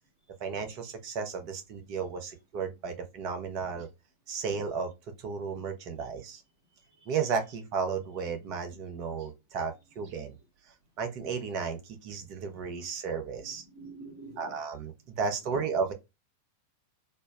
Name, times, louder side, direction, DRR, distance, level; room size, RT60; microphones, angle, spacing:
voice 1, 0.4-3.9 4.3-4.9 5.2-6.4 7.1-10.4 11.0-13.6 14.4-15.9, right 5 dB, 45° right, 0.7 m, -33 dB
voice 2, 6.7-7.4 13.5-14.6 15.4-15.6, right 2 dB, 60° right, 1.7 m, -49 dB
4.2 x 2.0 x 2.3 m
figure-of-eight pair, 90°, 0 cm